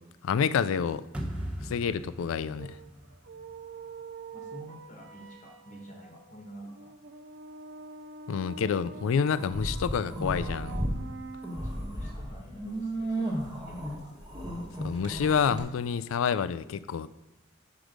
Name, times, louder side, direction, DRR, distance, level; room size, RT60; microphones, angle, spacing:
voice 1, 0.2-1.0 1.6-2.8 8.3-10.8 14.8-17.1, left 6 dB, 85° left, 16 dB, 0.3 m, -28 dB
sound 1, 1.1-4.2, equal, 5° right, 0.8 m, -39 dB
sound 2, 2.6-11.9, right 4 dB, 65° right, 0.5 m, -46 dB
voice 2, 4.3-6.9 11.6-14.2, right 1 dB, 40° left, 0 dB, 1.1 m, -48 dB
sound 3, 9.4-11.0 11.3-15.6, right 1 dB, 20° right, 1.2 m, -34 dB
6.2 x 4.8 x 5.1 m, 0.95 s
head